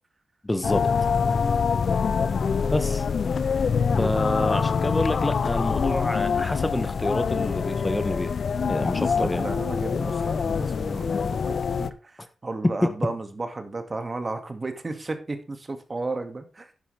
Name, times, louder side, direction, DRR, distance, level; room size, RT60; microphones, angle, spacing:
voice 1, 0.4-0.8 2.7-3.0 4.0-8.3 8.7-9.4, left 1 dB, 20° left, 10 dB, 1.4 m, -27 dB
sound 1, 0.6-11.9, left 6 dB, 65° left, 0.7 m, -25 dB
voice 2, 1.2-1.6 8.6-16.7, right 3 dB, 40° right, 7 dB, 2.3 m, -34 dB
10.5 x 10.0 x 3.5 m, 0.34 s
cardioid pair, 50°, 0 cm